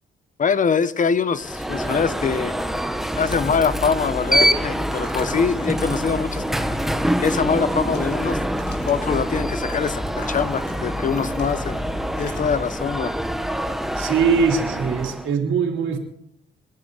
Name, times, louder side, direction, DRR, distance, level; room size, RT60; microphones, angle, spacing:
voice 1, 0.4-2.6 3.2-6.4 7.2-8.4 8.9-10.0 10.3-11.8 12.2-13.1, left 6 dB, 40° left, 1.1 m, -23 dB
Alarm, 1.4-15.3, equal, ahead, 1.0 m, -26 dB
sound 1, 3.1-12.7, left 3 dB, 60° left, 3.5 m, -35 dB
voice 2, 13.9-16.0, right 6 dB, 75° right, 3.4 m, -21 dB
29.0 x 10.5 x 4.1 m
cardioid pair, 90°, 20 cm